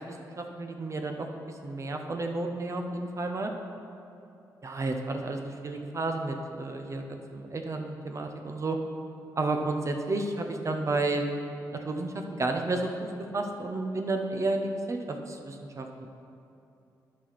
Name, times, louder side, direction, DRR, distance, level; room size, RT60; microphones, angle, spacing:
voice 1, 0.1-3.5 4.6-8.8 9.4-11.3 11.7-16.1, right 2 dB, 40° right, 4 dB, 0.9 m, -32 dB
11.0 x 4.3 x 6.1 m, 2.8 s
cardioid pair, 60°, 8 cm